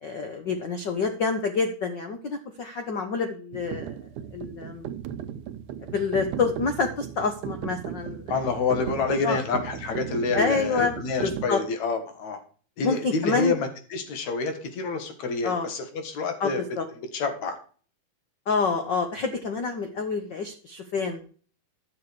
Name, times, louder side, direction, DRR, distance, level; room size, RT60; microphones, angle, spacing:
voice 1, 0.0-4.0 4.3-4.9 5.8-8.3 9.2-9.4 10.3-10.9 11.2-11.6 12.8-13.5 15.4-15.7 16.4-16.9 18.5-21.2, left 4 dB, 80° left, 6 dB, 1.0 m, -27 dB
sound 1, 3.5-11.5, right 10 dB, 80° right, 2.1 m, -36 dB
voice 2, 8.3-12.4 12.8-16.6 17.1-17.6, left 4 dB, 65° left, 7 dB, 2.8 m, -28 dB
11.5 x 6.8 x 4.7 m, 0.41 s
omnidirectional pair, 3.7 m